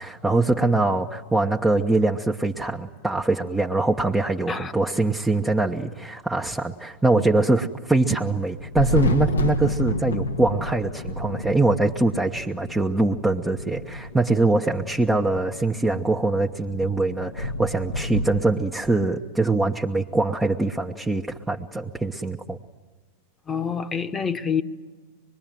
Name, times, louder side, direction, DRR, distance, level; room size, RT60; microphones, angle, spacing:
voice 1, 0.0-22.6, right 2 dB, 10° right, 1.2 m, -23 dB
Thunder, 8.6-18.4, left 2 dB, 85° left, 1.5 m, -30 dB
voice 2, 23.5-24.6, left 6 dB, 20° left, 1.4 m, -27 dB
24.5 x 22.0 x 9.2 m
hypercardioid pair, 95°, 0 cm